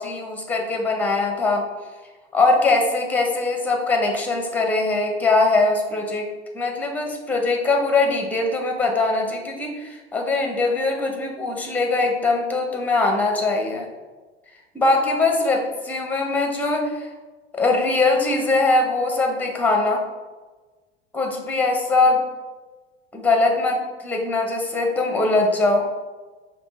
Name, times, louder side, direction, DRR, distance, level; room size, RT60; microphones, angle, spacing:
voice 1, 0.0-1.6 2.3-6.3 6.5-13.9 14.7-17.1 17.5-20.0 21.1-22.2 23.1-25.9, left 3 dB, 5° left, 2 dB, 0.7 m, -21 dB
5.2 x 3.2 x 3.1 m, 1.3 s
figure-of-eight pair, 80°, 33 cm